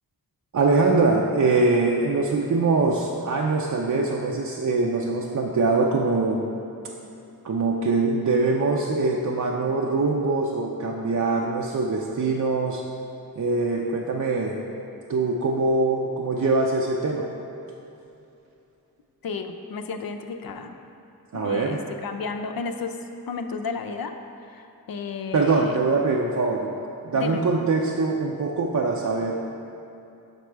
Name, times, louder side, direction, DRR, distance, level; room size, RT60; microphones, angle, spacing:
voice 1, 0.5-6.4 7.4-12.8 13.4-14.6 15.1-17.3 21.3-21.8 25.3-26.7 27.0-29.5, right 3 dB, 50° right, -1 dB, 0.6 m, -23 dB
voice 2, 19.2-20.7 21.3-23.0 23.3-24.1 24.4-25.8 27.1-27.4, left 5 dB, 65° left, 6 dB, 0.6 m, -32 dB
6.6 x 4.2 x 4.6 m, 2.8 s
cardioid pair, 45°, 38 cm